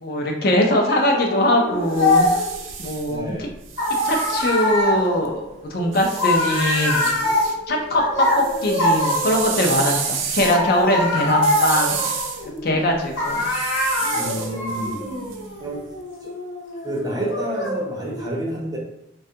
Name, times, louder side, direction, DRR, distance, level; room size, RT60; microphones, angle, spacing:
voice 1, 0.0-2.3 2.8-3.5 4.0-7.2 7.7-12.1 12.4-13.5, left 1 dB, 50° left, 1 dB, 0.5 m, -21 dB
sound 1, 0.8-2.6 3.8-9.7 10.4-12.8 13.2-18.2, left 1 dB, 70° left, 0.8 m, -24 dB
sound 2, 1.7-5.3 5.9-7.6 7.9-15.8, right 6 dB, 80° right, 0.4 m, -31 dB
voice 2, 3.1-3.4 14.1-14.9 15.6-15.8 16.2-16.3 16.8-18.8, right 1 dB, 20° right, -2 dB, 0.5 m, -29 dB
3.3 x 2.3 x 2.7 m, 0.83 s
head